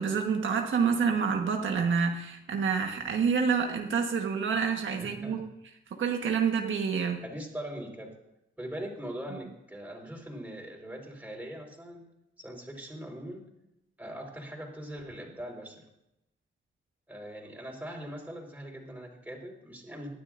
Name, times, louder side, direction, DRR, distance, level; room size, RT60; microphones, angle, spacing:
voice 1, 0.0-5.4 6.0-7.2, right 6 dB, 85° right, 3 dB, 1.4 m, -28 dB
voice 2, 5.0-5.4 7.2-8.2 8.6-12.0 12.4-13.5 14.0-15.8 17.1-20.2, equal, 10° right, 0 dB, 4.4 m, -41 dB
19.0 x 12.0 x 2.6 m, 0.86 s
cardioid pair, 90°, 20 cm